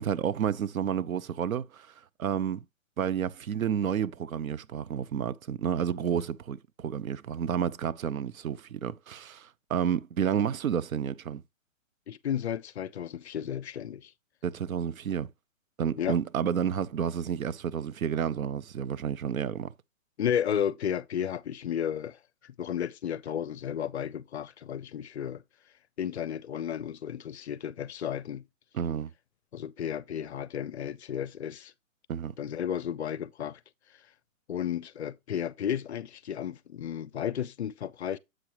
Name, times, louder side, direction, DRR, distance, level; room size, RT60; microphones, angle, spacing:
voice 1, 0.0-1.9 2.2-2.7 3.0-11.4 14.4-15.3 15.8-19.7 28.7-29.1 32.1-32.3, right 8 dB, 85° right, 0.7 m, -30 dB
voice 2, 12.1-14.1 16.0-16.1 20.2-22.2 22.4-25.4 26.0-28.4 29.5-31.7 32.4-33.6 34.5-38.2, left 9 dB, 55° left, 0.6 m, -33 dB
7.7 x 6.0 x 2.9 m
hypercardioid pair, 160°, 40 cm